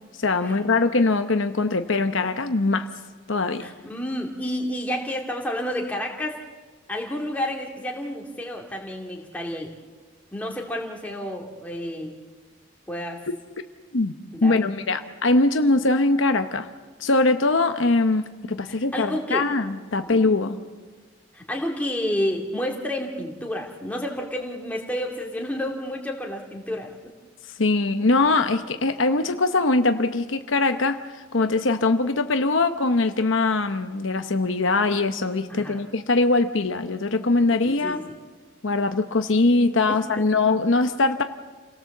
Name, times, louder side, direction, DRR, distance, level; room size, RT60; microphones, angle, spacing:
voice 1, 0.2-2.9 3.3-3.7 13.3-13.4 13.9-14.1 14.4-16.7 17.0-20.6 27.6-38.0 38.6-41.2, left 3 dB, 70° left, 7 dB, 0.9 m, -22 dB
voice 2, 3.6-6.4 6.9-9.7 10.3-12.2 12.9-13.2 14.3-14.7 18.7-19.4 20.1-20.2 21.3-27.1 35.5-35.8 37.8-38.0 40.2-40.3, left 1 dB, 5° left, -1 dB, 2.5 m, -30 dB
28.0 x 18.0 x 7.3 m, 1.4 s
head